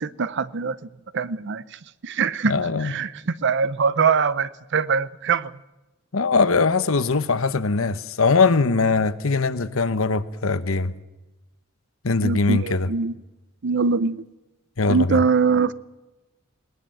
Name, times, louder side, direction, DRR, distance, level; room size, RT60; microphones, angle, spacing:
voice 1, 0.0-2.5 2.8-5.6 12.2-13.1 13.6-14.2 14.9-15.7, right 5 dB, 60° right, 0.6 m, -23 dB
voice 2, 2.4-2.9 6.1-10.9 12.0-12.9 14.8-15.2, left 4 dB, 75° left, 1.0 m, -21 dB
20.5 x 19.0 x 7.7 m
head